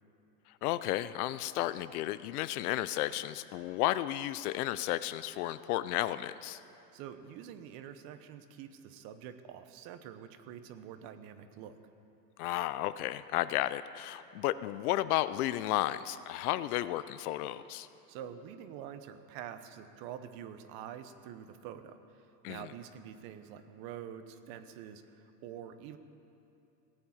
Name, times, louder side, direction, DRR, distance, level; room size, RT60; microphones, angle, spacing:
voice 1, 0.6-6.6 12.4-17.9 22.4-22.7, left 15 dB, 65° left, 15 dB, 0.6 m, -33 dB
voice 2, 6.9-11.7 18.1-26.0, right 9 dB, 45° right, 10 dB, 1.0 m, -46 dB
17.5 x 9.1 x 7.2 m, 2.8 s
supercardioid pair, 125°, 49 cm